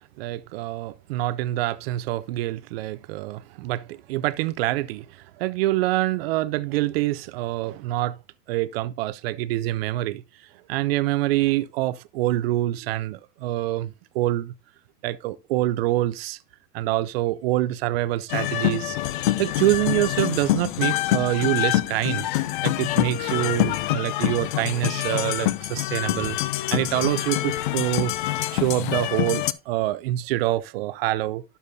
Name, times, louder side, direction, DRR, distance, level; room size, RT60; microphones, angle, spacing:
voice 1, 0.2-8.2 8.5-10.2 10.7-14.5 15.0-16.4 16.7-19.0 19.4-22.3 22.6-26.4 26.7-31.4, right 15 dB, 40° right, 0.5 m, -26 dB
sound 1, 18.3-29.5, left 15 dB, 35° left, 0.4 m, -25 dB
11.5 x 6.9 x 2.6 m
hypercardioid pair, 120°, 47 cm